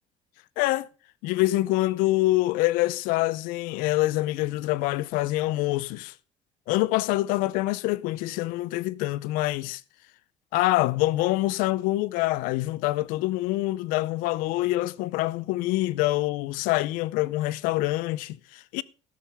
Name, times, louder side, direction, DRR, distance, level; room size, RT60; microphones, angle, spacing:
voice 1, 0.6-0.9 1.2-6.1 6.7-9.8 10.5-18.8, left 18 dB, 80° left, 0.5 m, -25 dB
12.5 x 11.5 x 3.5 m
supercardioid pair, 90°, 14 cm